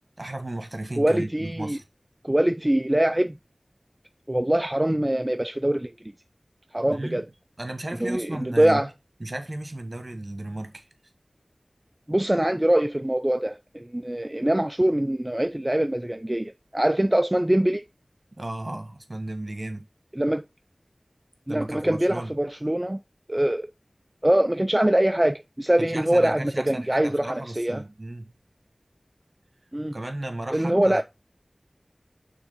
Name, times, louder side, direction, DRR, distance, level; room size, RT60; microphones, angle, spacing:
voice 1, 0.2-1.8 6.9-7.2 7.6-8.9 9.2-10.9 18.4-19.9 21.5-22.3 25.8-28.3 29.9-31.0, right 1 dB, 50° right, 1.5 m, -34 dB
voice 2, 1.0-1.8 2.2-3.4 4.3-5.9 6.7-7.2 8.0-8.9 12.1-17.8 20.2-20.4 21.5-23.0 23.3-23.7 24.2-27.8 29.7-30.0 30.5-31.0, right 1 dB, 25° right, 0.4 m, -23 dB
6.3 x 3.6 x 5.6 m
wide cardioid pair, 45°, 0 cm